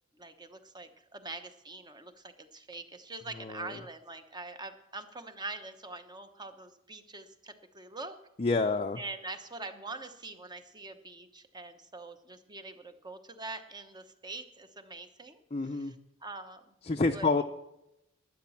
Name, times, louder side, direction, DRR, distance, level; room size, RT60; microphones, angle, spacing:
voice 1, 0.1-8.2 9.0-16.7 17.1-17.4, right 3 dB, 20° right, 9 dB, 1.0 m, -44 dB
voice 2, 3.4-3.7 8.4-9.0 15.5-15.9 16.9-17.4, left 3 dB, 30° left, 3 dB, 0.5 m, -28 dB
12.0 x 10.0 x 7.1 m, 0.85 s
head